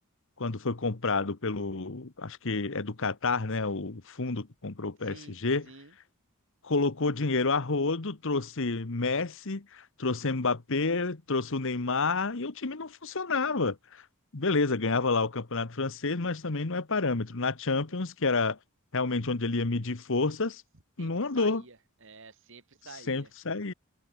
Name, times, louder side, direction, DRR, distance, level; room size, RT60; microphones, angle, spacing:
voice 1, 0.4-5.7 6.6-13.8 14.3-18.6 18.9-20.6 21.0-21.6 23.1-23.7, left 3 dB, 60° left, 1.2 m, -29 dB
voice 2, 5.0-5.4 5.7-5.9 21.0-23.3, right 4 dB, 60° right, 2.5 m, -50 dB
head